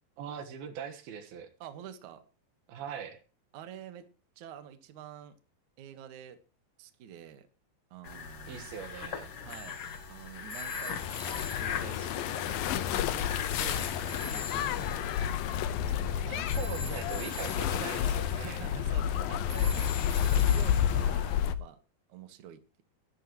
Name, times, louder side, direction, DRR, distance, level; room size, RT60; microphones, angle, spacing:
voice 1, 0.2-1.5 2.7-3.2 8.5-9.3 16.2-18.6, right 7 dB, 80° right, 6 dB, 3.4 m, -41 dB
voice 2, 1.6-2.2 3.5-4.1 4.4-5.4 5.8-6.4 6.8-7.5 7.9-8.7 9.4-9.8 10.1-15.4 15.9-16.4 18.4-19.9 20.2-21.8 22.1-22.8, right 9 dB, 60° right, 9 dB, 2.6 m, -48 dB
sound 1, 8.0-15.6, left 7 dB, 50° left, 1.9 m, -40 dB
Telephone, 9.5-13.1 13.5-21.4, left 1 dB, 10° left, 2.0 m, -46 dB
sound 2, 11.0-21.6, left 9 dB, 80° left, 2.6 m, -30 dB
20.0 x 13.5 x 3.1 m, 0.33 s
omnidirectional pair, 4.3 m